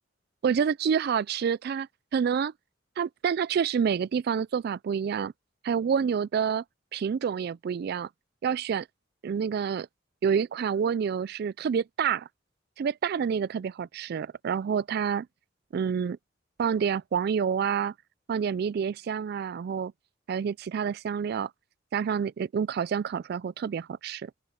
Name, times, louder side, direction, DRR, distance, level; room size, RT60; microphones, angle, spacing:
voice 1, 0.4-2.5 3.0-5.3 5.6-6.6 6.9-8.1 8.4-8.9 9.2-9.9 10.2-12.3 12.8-15.3 15.7-16.2 16.6-17.9 18.3-19.9 20.3-21.5 21.9-24.3, right 7 dB, 55° right, 0.3 m, -28 dB
open air
head